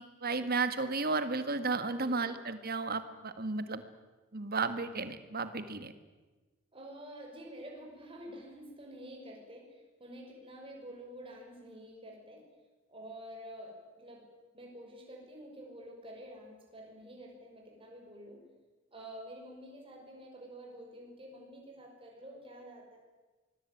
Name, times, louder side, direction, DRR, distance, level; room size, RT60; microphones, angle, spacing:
voice 1, 0.0-3.8 4.3-5.9, right 3 dB, 45° right, 11 dB, 1.9 m, -33 dB
voice 2, 1.8-2.3 6.7-12.4 12.9-14.3 14.5-18.4 18.9-23.0, equal, 25° right, 0 dB, 6.1 m, -49 dB
25.5 x 20.5 x 9.4 m, 1.2 s
head